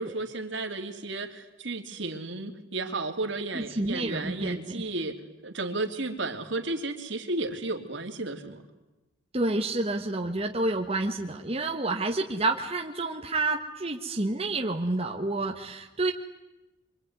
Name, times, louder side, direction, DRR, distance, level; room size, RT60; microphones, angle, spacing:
voice 1, 0.0-5.2 5.4-8.6, right 2 dB, 65° right, 4 dB, 3.0 m, -33 dB
voice 2, 3.5-4.8 9.3-16.1, right 2 dB, 30° right, 2 dB, 1.5 m, -29 dB
26.5 x 23.5 x 9.6 m, 1.0 s
head